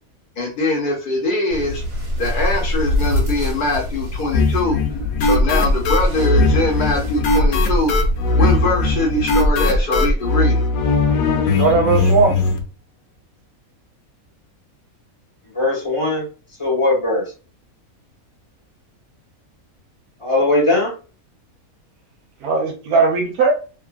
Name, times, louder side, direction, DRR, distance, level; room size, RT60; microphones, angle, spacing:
voice 1, 0.4-1.8 2.2-4.8 5.2-8.0 8.3-10.6, left 2 dB, 60° left, -1 dB, 0.5 m, -22 dB
sound 1, 1.5-9.2, left 1 dB, 65° right, 1.5 m, -26 dB
sound 2, 4.3-12.6, left 2 dB, 80° left, 1.0 m, -18 dB
voice 2, 11.6-12.4 22.4-23.5, right 4 dB, 80° right, 3 dB, 1.2 m, -17 dB
voice 3, 15.5-16.2 16.6-17.2 20.2-20.9, left 2 dB, 25° left, -2 dB, 0.9 m, -19 dB
2.9 x 2.4 x 2.3 m, 0.34 s
omnidirectional pair, 1.5 m